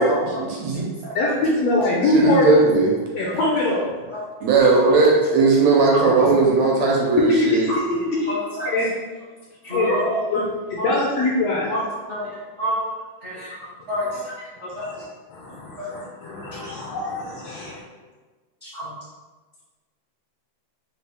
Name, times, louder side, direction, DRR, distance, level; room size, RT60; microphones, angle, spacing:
voice 1, 0.0-0.9 2.1-2.9 4.4-7.6, right 3 dB, 75° right, -2 dB, 1.8 m, -17 dB
voice 2, 1.1-2.5 3.1-3.8 6.2-6.3 7.3-8.4 8.7-8.9 9.7-11.8 14.0-14.1 14.8-14.9 15.3-17.7, left 2 dB, 80° left, -4 dB, 1.5 m, -23 dB
voice 3, 8.3-8.7 9.6-10.0 10.8-10.9 11.7-11.8 12.1-12.3 12.6-12.8 13.2-14.3 14.6-14.9 15.7-15.9 16.6-16.7 18.6-18.9, equal, 55° right, -11 dB, 0.5 m, -29 dB
5.3 x 2.3 x 3.4 m, 1.3 s
omnidirectional pair, 3.4 m